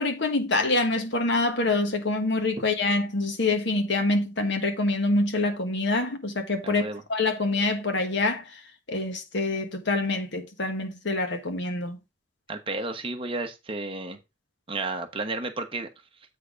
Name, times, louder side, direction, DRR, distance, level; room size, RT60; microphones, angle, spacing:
voice 1, 0.0-6.8 7.1-8.4 8.9-12.0, left 2 dB, 70° left, 1.5 m, -26 dB
voice 2, 6.6-7.0 12.5-14.2 14.7-15.9, right 2 dB, 30° right, 1.2 m, -32 dB
8.1 x 4.1 x 5.1 m
head